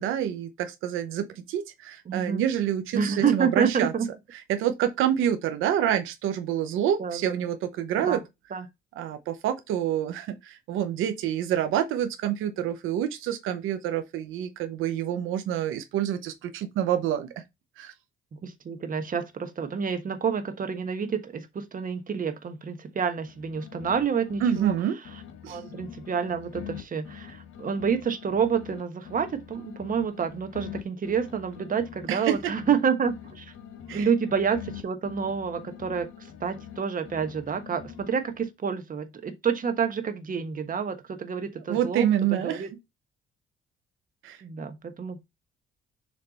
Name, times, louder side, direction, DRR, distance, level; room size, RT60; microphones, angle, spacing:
voice 1, 0.0-3.9 4.5-8.2 9.0-17.4 17.8-17.9 24.4-25.0 25.4-25.6 32.1-32.5 33.9-34.1 41.7-42.7 44.2-44.4, right 10 dB, 90° right, 0.7 m, -27 dB
voice 2, 2.1-2.4 2.9-4.1 7.0-7.3 8.1-8.2 8.5-8.6 18.3-24.7 25.5-33.4 33.9-36.1 36.4-42.1 42.4-42.7 44.4-45.2, right 6 dB, 45° right, 1.2 m, -28 dB
sound 1, 23.1-24.8 25.1-28.8 29.1-32.8 33.1-36.8 37.1-38.5, left 10 dB, 80° left, 1.3 m, -44 dB
7.0 x 3.3 x 4.0 m
cardioid pair, 90°, 20 cm